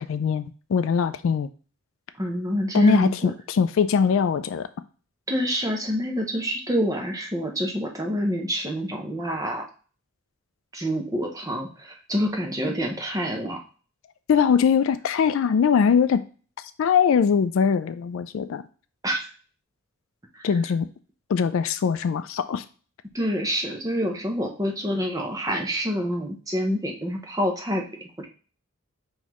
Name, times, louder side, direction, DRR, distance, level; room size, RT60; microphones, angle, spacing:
voice 1, 0.0-1.5 2.7-4.7 14.3-16.2 16.8-18.6 20.4-20.9 21.3-22.6, left 6 dB, 65° left, 12 dB, 0.3 m, -22 dB
voice 2, 2.2-3.3 5.3-9.7 10.7-13.6 19.0-19.3 20.3-20.5 23.1-27.8 28.2-28.3, equal, 15° right, 1 dB, 0.7 m, -27 dB
5.6 x 3.1 x 3.0 m, 0.38 s
head